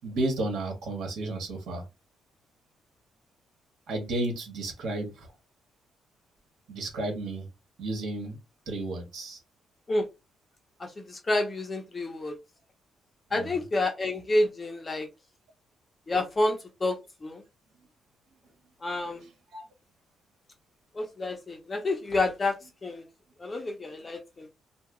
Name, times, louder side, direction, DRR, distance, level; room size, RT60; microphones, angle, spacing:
voice 1, 0.0-1.8 3.9-5.3 6.7-7.5 7.8-8.4 8.7-9.4 13.3-13.6 19.2-19.6, right 2 dB, 85° right, 1.3 m, -32 dB
voice 2, 10.8-12.4 13.3-15.1 16.1-17.4 18.8-19.2 20.9-22.6 22.8-23.0 23.4-24.5, left 2 dB, 20° left, 0.5 m, -29 dB
2.8 x 2.2 x 3.5 m
cardioid pair, 170°, 0 cm